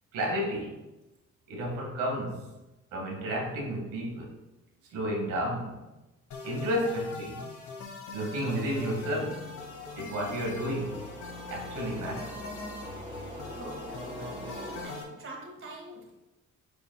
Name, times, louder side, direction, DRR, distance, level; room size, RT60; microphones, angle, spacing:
voice 1, 0.1-0.8 1.5-2.5 2.9-4.4 4.9-5.9 6.4-7.5 8.1-9.5 10.0-11.0 11.5-12.4, equal, 85° right, -2 dB, 1.8 m, -32 dB
sound 1, 6.3-15.0, left 3 dB, 70° left, 2.0 m, -42 dB
voice 2, 6.4-6.8 13.5-16.2, right 2 dB, 45° right, 0 dB, 1.8 m, -46 dB
sound 2, 8.7-14.8, equal, 25° right, 2.1 m, -44 dB
9.9 x 5.3 x 2.3 m, 1.0 s
cardioid pair, 90°, 30 cm